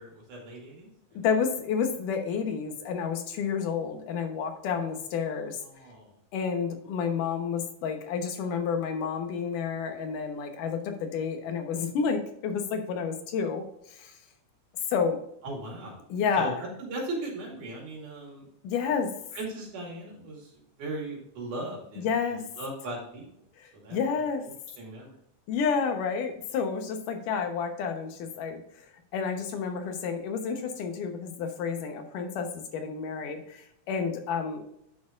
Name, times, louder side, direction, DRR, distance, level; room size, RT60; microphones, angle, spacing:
voice 1, 0.0-1.3 5.6-6.1 15.4-16.0 16.4-18.5 19.3-23.3 23.7-24.0 24.8-25.2, right 2 dB, 80° right, -1 dB, 4.0 m, -38 dB
voice 2, 1.2-5.6 6.3-13.6 13.9-14.1 14.9-15.2 16.1-16.6 18.6-19.1 22.0-22.4 23.6-24.4 25.5-28.6 29.1-34.6, left 6 dB, 85° left, 6 dB, 2.7 m, -30 dB
10.0 x 6.4 x 2.5 m, 0.74 s
omnidirectional pair, 3.6 m